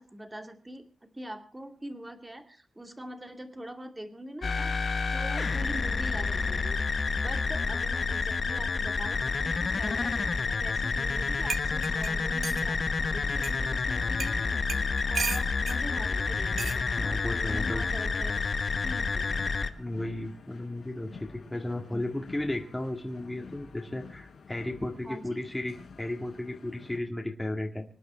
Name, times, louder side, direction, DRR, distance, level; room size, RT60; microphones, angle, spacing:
voice 1, 0.0-14.5 15.1-16.9 17.4-18.5 18.8-19.3 21.9-22.1 25.0-25.4, right 1 dB, 15° right, 6 dB, 2.5 m, -43 dB
sound 1, 4.4-19.7, left 4 dB, 50° left, 1.0 m, -29 dB
sound 2, 10.8-27.0, left 5 dB, 75° left, 4.4 m, -50 dB
sound 3, 11.1-11.2 11.5-12.7 13.4-13.5 14.2-14.4 14.7-15.8 16.6-16.8 17.9-18.2, right 5 dB, 65° right, 1.2 m, -35 dB
voice 2, 17.0-17.8 19.8-27.9, left 1 dB, 10° left, 1 dB, 2.2 m, -34 dB
25.5 x 10.5 x 4.5 m, 0.38 s
wide cardioid pair, 105°, 0 cm